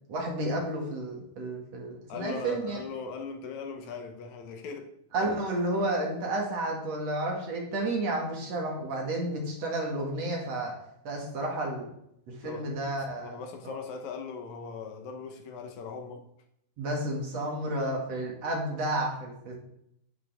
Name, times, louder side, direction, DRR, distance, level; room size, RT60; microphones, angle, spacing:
voice 1, 0.1-2.8 5.1-10.7 11.0-11.8 12.4-13.3 13.6-13.8 16.8-19.6, right 1 dB, 55° right, -1 dB, 3.1 m, -31 dB
voice 2, 2.1-4.9 12.4-12.7 13.2-16.2, left 5 dB, 70° left, 5 dB, 2.2 m, -39 dB
10.0 x 9.2 x 3.5 m, 0.76 s
omnidirectional pair, 3.5 m